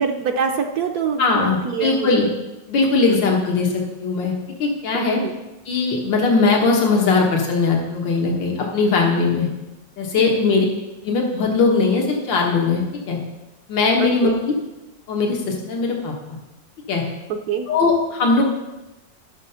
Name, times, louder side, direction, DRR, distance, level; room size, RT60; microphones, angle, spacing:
voice 1, 0.0-2.3 3.1-3.3 4.9-5.4 10.2-10.7 14.0-14.4 17.3-17.7 18.4-18.5, right 6 dB, 65° right, 4 dB, 1.1 m, -25 dB
voice 2, 1.2-2.3 2.7-3.7 4.0-4.3 4.6-5.2 5.7-9.5 10.0-10.7 11.0-13.2 13.7-14.5 15.1-16.4 16.9-17.0 17.7-18.4, left 4 dB, 85° left, -1 dB, 2.3 m, -19 dB
12.5 x 6.7 x 5.7 m, 1.0 s
omnidirectional pair, 2.0 m